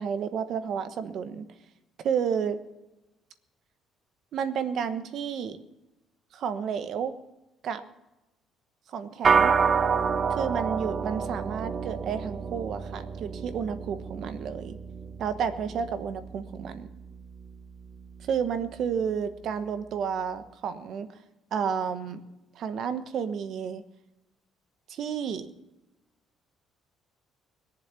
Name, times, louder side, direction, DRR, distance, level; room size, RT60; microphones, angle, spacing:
voice 1, 0.0-1.5 2.0-2.6 4.3-5.6 6.3-7.1 7.6-7.8 8.9-9.6 10.3-14.8 15.2-16.9 18.3-21.1 21.5-22.2 22.5-23.8 24.9-25.5, right 7 dB, 50° right, 10 dB, 1.2 m, -31 dB
sound 1, 9.2-18.8, right 5 dB, 30° right, 0.7 m, -29 dB
21.0 x 7.4 x 8.9 m, 0.98 s
cardioid pair, 155°, 0 cm